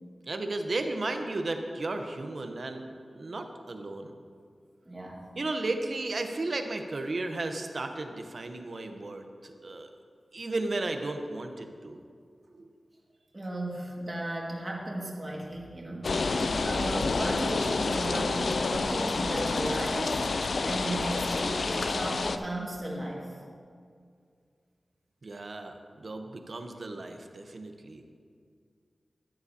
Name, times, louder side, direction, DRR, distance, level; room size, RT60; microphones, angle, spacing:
voice 1, 0.3-4.1 5.4-9.9 10.3-12.0 12.5-12.7 25.2-28.0, right 2 dB, 60° right, 5 dB, 0.8 m, -34 dB
voice 2, 4.9-5.3 13.3-20.2 20.6-23.3, right 1 dB, 30° right, -3 dB, 1.9 m, -35 dB
sound 1, 16.0-22.4, left 3 dB, 75° left, 0.4 m, -29 dB
12.5 x 9.6 x 2.8 m, 2.2 s
wide cardioid pair, 65°, 0 cm